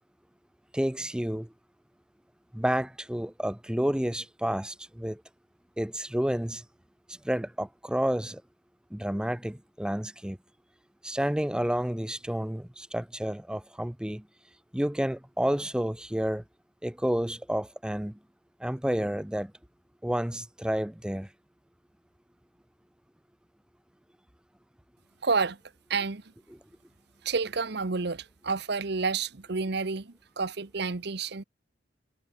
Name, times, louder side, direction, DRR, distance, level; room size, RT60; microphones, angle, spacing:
voice 1, 0.7-1.5 2.5-5.2 5.8-6.6 7.1-8.4 8.9-10.4 11.0-14.2 14.7-16.4 16.8-18.2 18.6-19.5 20.0-21.3, equal, 5° right, 0.6 m, -30 dB
voice 2, 25.2-25.6 25.9-26.3 27.2-31.4, right 4 dB, 60° right, 1.0 m, -30 dB
head